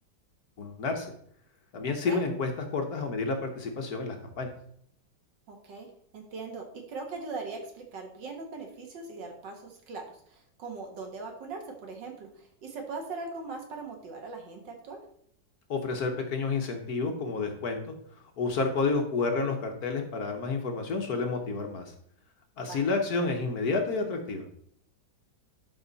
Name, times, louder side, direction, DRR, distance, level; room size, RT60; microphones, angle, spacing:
voice 1, 0.6-1.1 1.7-4.5 15.7-18.0 18.4-21.9 22.6-24.4, left 4 dB, 55° left, 3 dB, 1.3 m, -30 dB
voice 2, 5.5-5.9 6.1-15.0 22.6-22.9, right 3 dB, 65° right, 3 dB, 2.0 m, -40 dB
11.0 x 4.4 x 4.0 m, 0.65 s
omnidirectional pair, 2.1 m